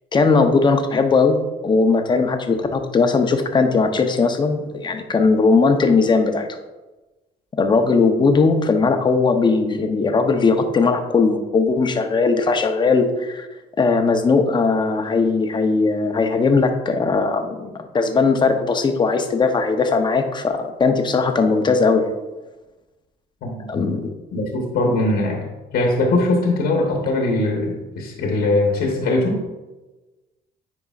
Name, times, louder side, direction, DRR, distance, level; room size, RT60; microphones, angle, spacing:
voice 1, 0.1-6.6 7.6-13.5 13.8-22.1 23.7-24.1, left 4 dB, 25° left, 6 dB, 0.7 m, -18 dB
voice 2, 23.4-24.0 24.3-25.5 25.7-29.4, left 2 dB, 70° left, 0 dB, 1.1 m, -21 dB
9.2 x 4.6 x 2.4 m, 1.1 s
cardioid pair, 110°, 17 cm